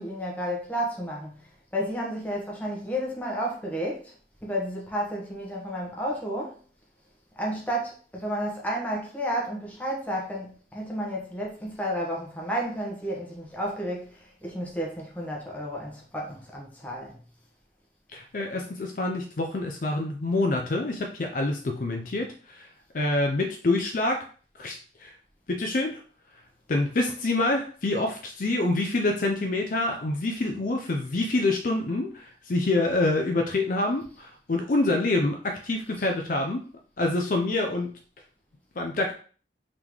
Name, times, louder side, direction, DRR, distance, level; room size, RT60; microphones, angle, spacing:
voice 1, 0.0-1.3 1.7-4.1 4.4-6.6 7.4-17.2 36.0-36.1, equal, 10° left, 1.0 m, -32 dB
voice 2, 18.1-22.7 22.9-24.3 24.6-25.1 25.5-26.0 26.7-36.6 37.0-37.9 38.8-39.1, left 2 dB, 50° left, 0.5 m, -26 dB
3.7 x 3.7 x 3.1 m
head